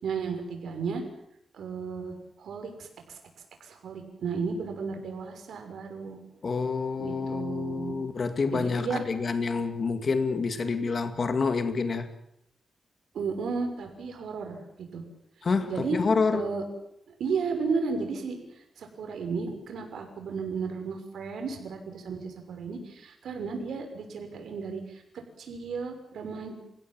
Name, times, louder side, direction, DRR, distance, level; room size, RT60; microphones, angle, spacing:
voice 1, 0.0-1.0 1.5-2.1 2.4-3.2 3.6-6.2 7.0-8.0 8.5-9.0 13.1-14.6 14.9-15.0 15.7-16.0 16.3-16.6 17.2-18.4 18.8-25.0 25.4-26.6, right 5 dB, 90° right, 4 dB, 6.3 m, -33 dB
voice 2, 6.4-12.1 15.4-16.5, left 4 dB, 45° left, 8 dB, 2.1 m, -28 dB
30.0 x 16.5 x 7.6 m, 0.78 s
wide cardioid pair, 130°, 0 cm